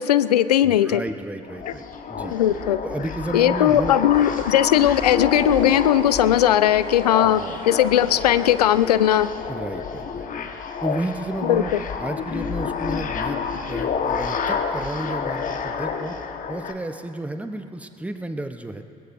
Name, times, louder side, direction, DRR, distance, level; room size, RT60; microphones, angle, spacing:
voice 1, 0.0-1.0 2.3-2.8 3.3-9.3 11.5-11.6, left 11 dB, 85° left, 16 dB, 0.4 m, -18 dB
voice 2, 0.6-1.8 2.1-2.3 2.8-3.9 7.2-7.6 9.5-10.5 10.8-16.1 16.5-18.8, right 1 dB, 5° right, 8 dB, 0.9 m, -32 dB
sound 1, 1.4-16.7, left 6 dB, 45° left, 1.3 m, -29 dB
sound 2, 4.1-9.3, right 3 dB, 40° right, 2.6 m, -45 dB
21.0 x 21.0 x 2.6 m, 2.7 s
hypercardioid pair, 60°, 20 cm